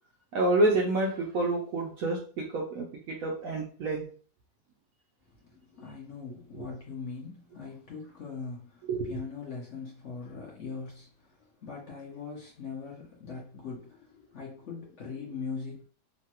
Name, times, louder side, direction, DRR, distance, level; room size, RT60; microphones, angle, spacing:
voice 1, 0.3-4.0 8.9-9.1, right 2 dB, 70° right, 0.8 m, -28 dB
voice 2, 5.3-15.8, left 5 dB, 55° left, 0.8 m, -41 dB
3.1 x 2.2 x 2.8 m
omnidirectional pair, 1.8 m